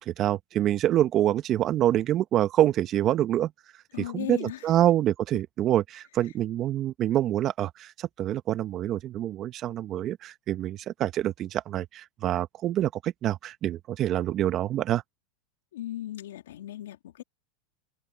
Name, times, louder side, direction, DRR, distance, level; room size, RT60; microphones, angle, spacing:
voice 1, 0.0-3.5 4.0-15.0, right 12 dB, 40° right, 1.4 m, -26 dB
voice 2, 3.9-4.6 15.7-17.2, left 13 dB, 80° left, 2.5 m, -37 dB
open air
hypercardioid pair, 110°, 0 cm